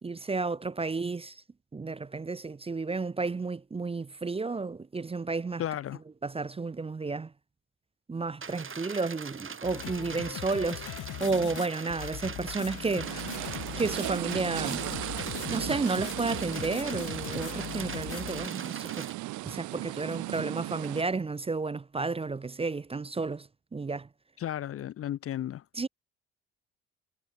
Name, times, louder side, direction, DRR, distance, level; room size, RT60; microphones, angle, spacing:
voice 1, 0.0-1.4 1.7-5.6 6.2-7.3 8.1-13.1 13.8-14.9 15.5-19.1 19.4-24.1 25.8-25.9, right 4 dB, 20° right, 0.6 m, -32 dB
voice 2, 5.6-6.0 24.4-25.6, left 11 dB, 45° left, 0.6 m, -34 dB
sound 1, 8.4-19.1, right 5 dB, 40° right, 3.1 m, -42 dB
sound 2, 9.6-18.5, left 15 dB, 65° left, 1.2 m, -40 dB
sound 3, 13.0-21.0, right 18 dB, 60° right, 0.6 m, -37 dB
hypercardioid pair, 45°, 33 cm